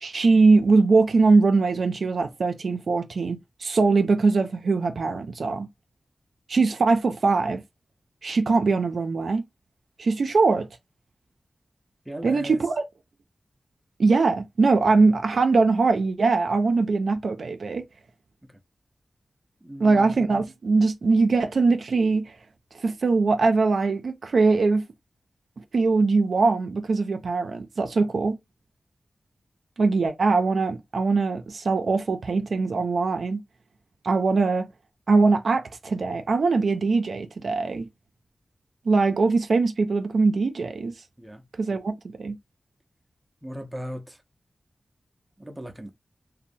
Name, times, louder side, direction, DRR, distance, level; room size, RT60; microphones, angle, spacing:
voice 1, 0.0-5.7 6.5-7.6 8.2-9.4 10.0-10.7 12.2-12.7 14.0-17.8 19.8-22.2 22.8-24.8 25.7-28.4 29.8-33.4 34.0-34.7 35.1-37.9 38.9-40.9 41.6-41.9 42.2-42.4, right 3 dB, 75° right, 0.3 m, -21 dB
voice 2, 12.1-12.6 18.4-18.6 19.6-20.1 41.2-41.4 43.4-44.2 45.4-45.9, equal, 15° right, 0.5 m, -37 dB
2.7 x 2.0 x 2.6 m
wide cardioid pair, 85°, 0 cm